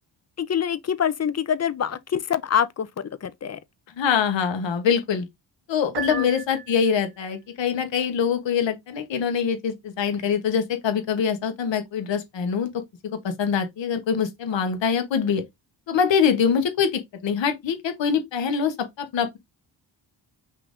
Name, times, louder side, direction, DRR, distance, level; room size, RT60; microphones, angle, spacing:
voice 1, 0.4-3.6 6.1-6.3, left 8 dB, 35° left, 0.5 m, -25 dB
voice 2, 4.0-5.3 5.7-12.8 13.2-15.4 15.9-19.4, left 7 dB, 70° left, 1.1 m, -24 dB
Piano, 5.9-7.2, right 7 dB, 60° right, 0.8 m, -35 dB
5.7 x 2.6 x 3.5 m
wide cardioid pair, 115°, 45 cm